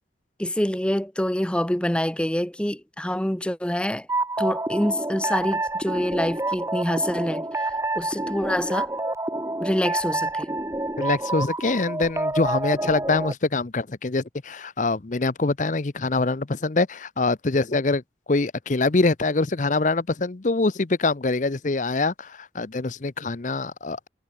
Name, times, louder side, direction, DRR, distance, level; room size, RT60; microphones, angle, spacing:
voice 1, 0.4-4.1 4.4-8.9 9.6-10.5, left 1 dB, 5° left, 0.8 m, -26 dB
sound 1, 4.1-13.3, right 2 dB, 15° right, 1.5 m, -28 dB
voice 2, 11.0-18.0 18.3-24.0, left 3 dB, 45° left, 0.7 m, -24 dB
head